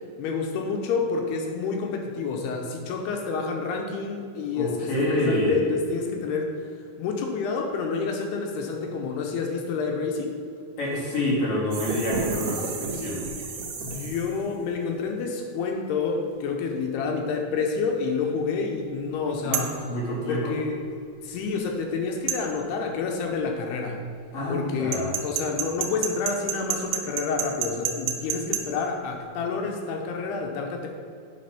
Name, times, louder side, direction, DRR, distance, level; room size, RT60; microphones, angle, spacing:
voice 1, 0.2-6.5 7.0-10.4 13.8-19.8 20.3-20.8 21.2-24.0 24.5-30.9, left 4 dB, 85° left, 3 dB, 2.7 m, -29 dB
voice 2, 4.5-5.6 10.8-13.2 19.4-19.6 19.9-20.5 24.3-25.2, left 1 dB, 45° left, -6 dB, 2.4 m, -27 dB
sound 1, 11.7-14.5, right 4 dB, 70° right, 2.3 m, -32 dB
sound 2, 19.5-19.8 22.3-22.4 24.9-28.6, right 9 dB, 85° right, 2.1 m, -28 dB
8.3 x 4.4 x 5.7 m, 2.3 s
omnidirectional pair, 4.8 m